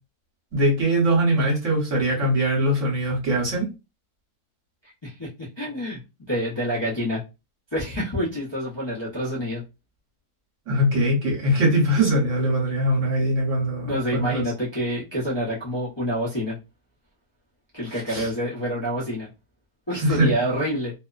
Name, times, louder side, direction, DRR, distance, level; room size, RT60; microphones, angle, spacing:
voice 1, 0.5-3.7 10.7-14.4 18.1-18.3 20.0-20.3, right 1 dB, 55° right, -2 dB, 1.3 m, -22 dB
voice 2, 4.8-6.0 6.3-7.2 7.7-9.6 13.8-16.6 17.7-19.3 19.9-20.9, equal, 25° left, -8 dB, 0.6 m, -27 dB
2.9 x 2.1 x 2.3 m, 0.27 s
omnidirectional pair, 1.7 m